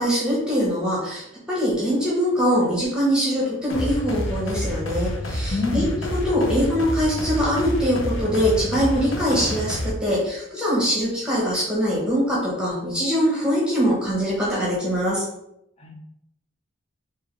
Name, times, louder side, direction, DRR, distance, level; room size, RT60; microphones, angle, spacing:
voice 1, 0.0-15.3, equal, 5° right, -5 dB, 1.0 m, -23 dB
sound 1, 3.7-9.9, equal, 85° left, 0.8 m, -28 dB
voice 2, 5.5-5.9 15.8-15.9, left 3 dB, 30° left, 1 dB, 0.7 m, -26 dB
4.7 x 2.9 x 3.1 m, 0.81 s
head